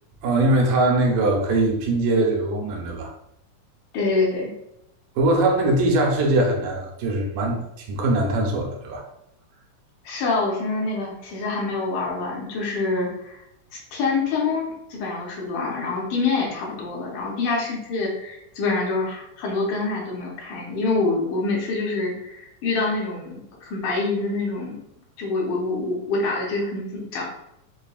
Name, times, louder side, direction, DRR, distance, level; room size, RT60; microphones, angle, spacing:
voice 1, 0.2-3.1 5.2-9.0, right 2 dB, 80° right, 0 dB, 2.3 m, -21 dB
voice 2, 3.9-4.5 10.0-13.4 13.7-24.8 25.2-27.2, left 3 dB, 75° left, -2 dB, 2.2 m, -26 dB
6.1 x 2.2 x 2.3 m, 0.81 s
omnidirectional pair, 3.7 m